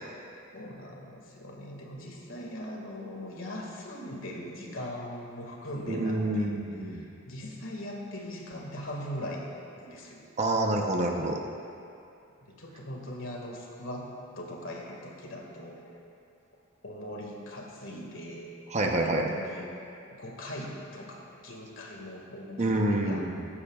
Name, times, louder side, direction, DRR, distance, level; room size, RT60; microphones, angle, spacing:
voice 1, 0.5-6.5 6.9-9.5 9.8-10.2 12.4-14.1 14.4-15.9 16.8-18.5 19.1-19.7 20.1-23.2, left 1 dB, 70° left, -1 dB, 2.0 m, -40 dB
voice 2, 5.9-7.0 10.4-11.4 18.7-19.3 22.6-23.5, right 1 dB, 35° right, 2 dB, 0.8 m, -27 dB
21.5 x 9.8 x 2.4 m, 2.6 s
head